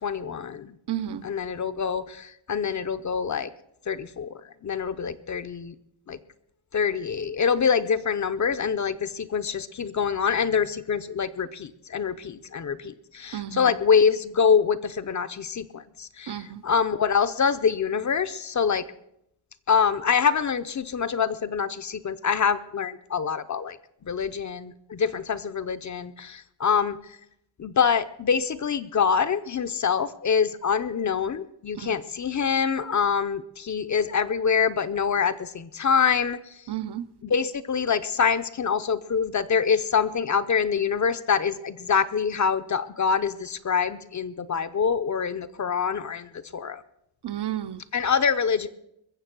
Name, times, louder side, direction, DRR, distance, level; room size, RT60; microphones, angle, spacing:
voice 1, 0.0-0.7 1.2-3.5 3.9-5.7 6.1-6.2 6.7-18.8 19.7-23.8 24.0-27.2 27.6-36.6 37.2-46.8 47.9-48.7, left 6 dB, 40° left, 0.6 m, -25 dB
voice 2, 0.9-1.2 13.3-13.7 16.3-16.6 31.8-31.9 36.7-37.0 47.2-47.8, right 12 dB, 60° right, 0.8 m, -32 dB
22.0 x 7.4 x 6.0 m
wide cardioid pair, 150°, 44 cm